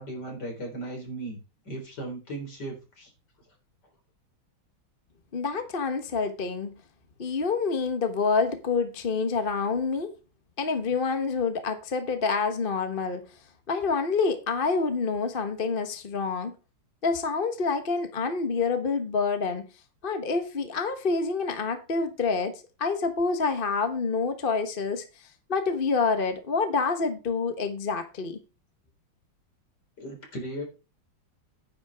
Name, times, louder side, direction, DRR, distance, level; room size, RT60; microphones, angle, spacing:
voice 1, 0.0-1.4 1.7-3.1 30.0-30.6, right 1 dB, 55° left, 4.5 m, -36 dB
voice 2, 5.3-6.8 7.2-10.1 10.6-13.2 13.7-16.5 17.0-19.6 20.0-28.4, left 4 dB, 35° left, 1.1 m, -27 dB
10.5 x 9.8 x 3.5 m
omnidirectional pair, 2.1 m